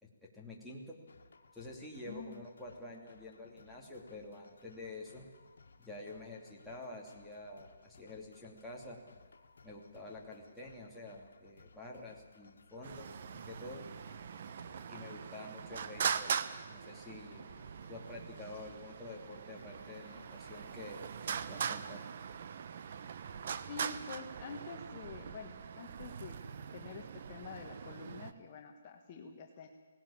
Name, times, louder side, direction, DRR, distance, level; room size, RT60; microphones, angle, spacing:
voice 1, 0.0-0.9 1.5-5.3 5.8-9.0 9.6-13.8 14.9-16.3 16.7-17.5 17.9-22.0, left 2 dB, ahead, -6 dB, 2.8 m, -48 dB
sound 1, 1.1-20.9, left 4 dB, 85° left, 1.9 m, -62 dB
voice 2, 2.1-2.4 23.7-26.4 26.7-29.7, left 5 dB, 30° left, 2 dB, 1.6 m, -47 dB
Traffic noise roadway noise, 12.8-28.3, right 7 dB, 50° right, 1.0 m, -41 dB
18.5 x 17.5 x 8.8 m, 1.4 s
hypercardioid pair, 165°, 0 cm